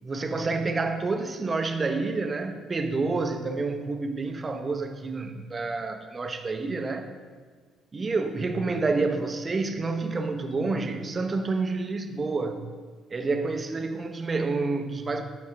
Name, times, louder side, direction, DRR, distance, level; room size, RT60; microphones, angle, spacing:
voice 1, 0.0-7.1 7.9-12.6 13.1-15.2, right 3 dB, 35° right, 7 dB, 0.8 m, -28 dB
11.0 x 5.3 x 3.5 m, 1.5 s
hypercardioid pair, 55°, 0 cm